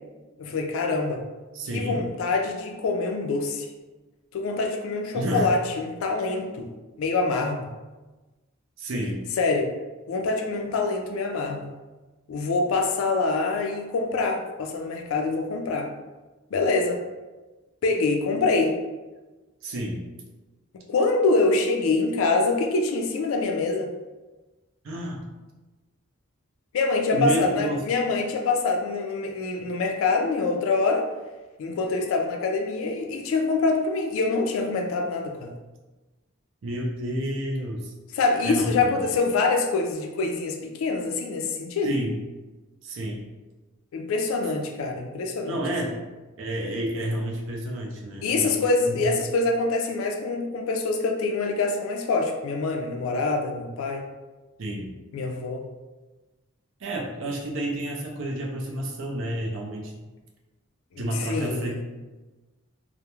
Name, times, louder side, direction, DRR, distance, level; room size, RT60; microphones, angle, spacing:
voice 1, 0.4-1.2 1.7-3.7 4.3-6.7 7.0-7.7 9.4-9.7 10.1-11.7 12.3-15.9 16.5-17.0 17.8-18.8 20.9-23.9 26.7-31.0 31.6-35.5 38.1-41.9 43.9-45.6 48.2-54.0 55.1-55.6 60.9-61.8, left 3 dB, 75° left, 2 dB, 0.3 m, -25 dB
voice 2, 1.5-2.0 5.1-5.5 8.8-9.2 19.6-20.1 24.8-25.3 27.1-27.8 36.6-37.9 38.4-38.7 41.8-42.2 42.8-43.2 45.5-46.0 46.4-48.6 48.9-49.2 54.6-54.9 56.8-59.9 61.0-61.8, right 1 dB, 60° right, -1 dB, 0.4 m, -30 dB
2.3 x 2.0 x 2.9 m, 1.2 s
head